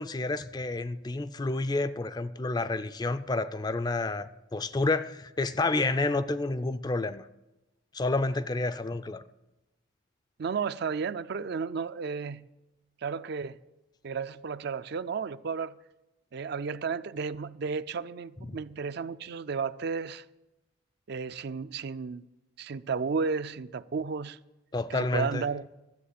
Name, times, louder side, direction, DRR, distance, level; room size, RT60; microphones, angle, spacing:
voice 1, 0.0-7.2 7.9-9.2 18.5-18.6 24.7-25.4, left 2 dB, 20° left, 0.4 m, -29 dB
voice 2, 10.4-12.5 13.0-13.6 14.0-15.8 16.3-20.2 21.1-22.2 22.6-24.4 24.9-25.7, right 5 dB, 55° right, 0.4 m, -33 dB
13.0 x 7.6 x 8.4 m
head